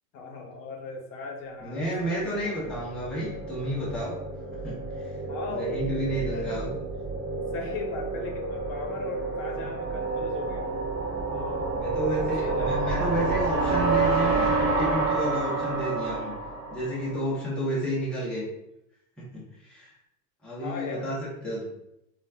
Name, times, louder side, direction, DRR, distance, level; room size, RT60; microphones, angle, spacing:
voice 1, 0.1-2.6 5.3-5.8 6.2-6.6 7.5-10.9 11.3-11.8 12.2-13.4 20.6-21.1, left 4 dB, 65° left, 1 dB, 0.7 m, -38 dB
voice 2, 1.6-4.1 4.6-5.1 5.5-6.7 11.7-16.3 16.7-18.5 19.2-19.3 19.6-19.9 20.4-21.2 21.4-21.6, equal, ahead, -7 dB, 0.7 m, -31 dB
sound 1, 2.0-17.3, right 3 dB, 30° right, 1.1 m, -29 dB
3.9 x 2.3 x 2.2 m, 0.81 s
supercardioid pair, 135°, 42 cm